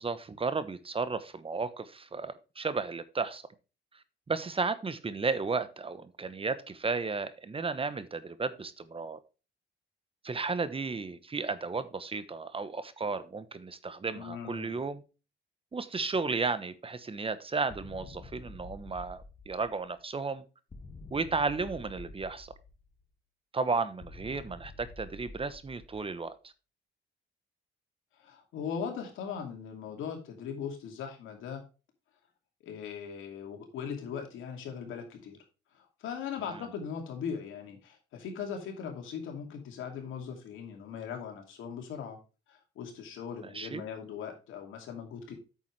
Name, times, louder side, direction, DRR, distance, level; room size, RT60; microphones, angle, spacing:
voice 1, 0.0-3.4 4.3-9.2 10.2-15.0 15.7-20.4 21.1-22.5 23.5-26.4 43.5-43.8, right 4 dB, 30° right, 1.0 m, -33 dB
voice 2, 14.1-14.8 28.2-31.6 32.6-35.4 35.7-42.2 42.5-45.3, left 7 dB, 85° left, 2.6 m, -39 dB
sound 1, 17.7-20.0 20.7-23.0 24.0-26.3, left 2 dB, 30° left, 1.4 m, -48 dB
8.9 x 7.0 x 3.3 m
cardioid pair, 90°, 20 cm